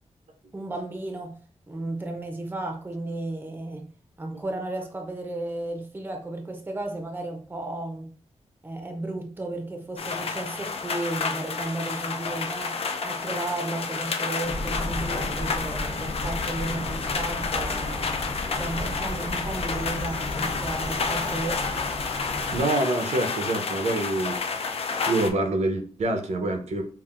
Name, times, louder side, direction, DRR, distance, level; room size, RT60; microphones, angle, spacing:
voice 1, 0.5-1.4 1.7-3.9 4.2-8.1 8.6-18.1 18.5-21.7, right 2 dB, 15° right, 0.6 m, -34 dB
sound 1, 10.0-25.3, left 4 dB, 60° left, 0.5 m, -30 dB
sound 2, 14.4-22.6, left 2 dB, 80° left, 1.0 m, -34 dB
voice 2, 22.5-24.4 25.1-26.8, right 2 dB, 70° right, 0.6 m, -26 dB
5.5 x 2.5 x 2.4 m
wide cardioid pair, 160°, 12 cm